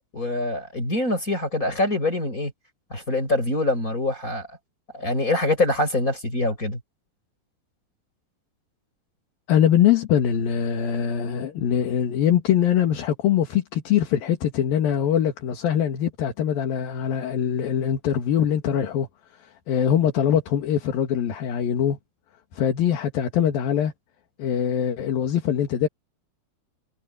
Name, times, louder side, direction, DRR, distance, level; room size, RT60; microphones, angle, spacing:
voice 1, 0.1-2.5 2.9-4.5 4.9-6.8, left 2 dB, 20° left, 5.7 m, -24 dB
voice 2, 9.5-19.1 19.7-22.0 22.5-23.9 24.4-25.9, left 9 dB, 70° left, 3.6 m, -22 dB
omnidirectional pair, 4.4 m